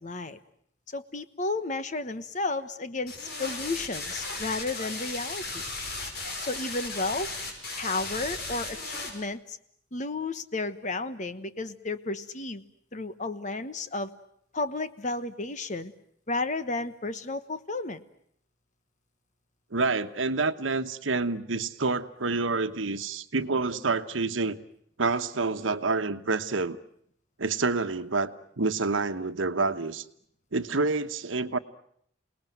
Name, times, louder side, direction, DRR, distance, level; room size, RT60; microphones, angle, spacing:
voice 1, 0.0-0.4 0.9-5.6 6.4-7.3 7.8-9.6 9.9-12.6 12.9-14.1 14.5-15.9 16.3-18.0, left 3 dB, 40° left, 12 dB, 1.2 m, -32 dB
sound 1, 3.1-9.1, left 3 dB, 55° left, 6.0 m, -36 dB
voice 2, 19.7-24.6 25.0-26.8 27.4-28.3 28.6-30.0 30.5-31.6, right 3 dB, 85° right, 10 dB, 1.2 m, -28 dB
28.0 x 19.0 x 9.3 m, 0.70 s
head